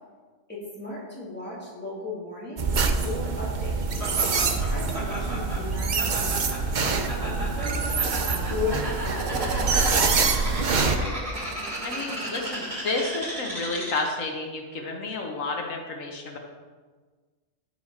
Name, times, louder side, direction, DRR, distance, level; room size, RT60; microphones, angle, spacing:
voice 1, 0.5-2.7 3.0-3.8 4.4-6.3 6.8-8.0 8.5-9.9, left 3 dB, 10° left, -6 dB, 2.8 m, -35 dB
sound 1, 2.6-11.0, right 4 dB, 45° right, 0.7 m, -25 dB
Laughter, 4.0-14.2, right 1 dB, 25° right, 2.4 m, -35 dB
sound 2, 7.6-13.2, right 4 dB, 85° right, 1.3 m, -35 dB
voice 2, 11.8-16.4, left 3 dB, 85° left, 2 dB, 1.5 m, -31 dB
14.5 x 4.8 x 4.3 m, 1.4 s
omnidirectional pair, 1.3 m